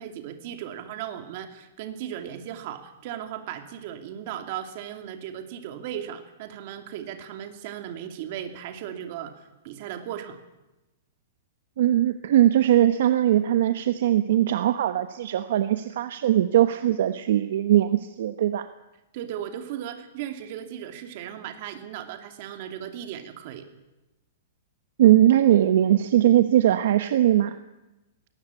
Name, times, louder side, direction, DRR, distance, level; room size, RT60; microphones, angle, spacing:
voice 1, 0.0-9.3 9.6-10.4 19.1-23.7, right 10 dB, 45° right, 6 dB, 2.7 m, -36 dB
voice 2, 11.8-18.7 25.0-27.6, right 12 dB, 65° right, 10 dB, 1.1 m, -20 dB
20.5 x 18.5 x 8.4 m, 1.0 s
hypercardioid pair, 165°, 0 cm